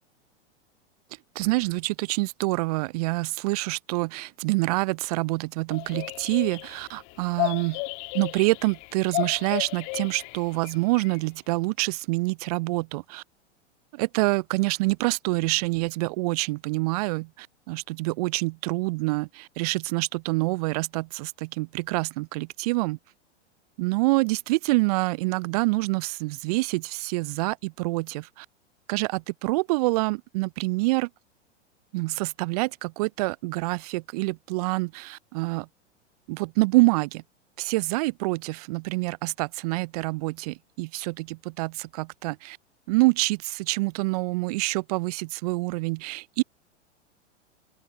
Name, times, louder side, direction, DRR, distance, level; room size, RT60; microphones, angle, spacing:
voice 1, 1.4-7.8 8.1-13.2 13.9-23.0 23.8-28.5 28.9-31.1 31.9-35.7 36.3-37.2 37.6-42.6 42.9-46.4, right 24 dB, 35° right, 0.4 m, -26 dB
sound 1, 5.7-10.7 10.9-11.2, left 35 dB, 45° left, 3.0 m, -33 dB
open air
figure-of-eight pair, 95°, 36 cm